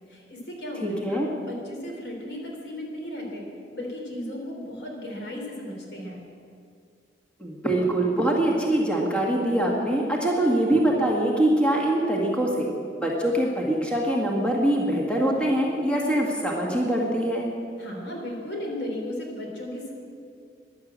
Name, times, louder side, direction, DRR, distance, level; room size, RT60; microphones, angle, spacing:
voice 1, 0.1-3.4 3.7-6.2 17.8-19.9, left 1 dB, 70° left, 0 dB, 3.5 m, -35 dB
voice 2, 0.8-1.3 7.4-17.5, right 1 dB, 5° left, -2 dB, 1.9 m, -23 dB
15.0 x 11.0 x 7.6 m, 2.3 s
head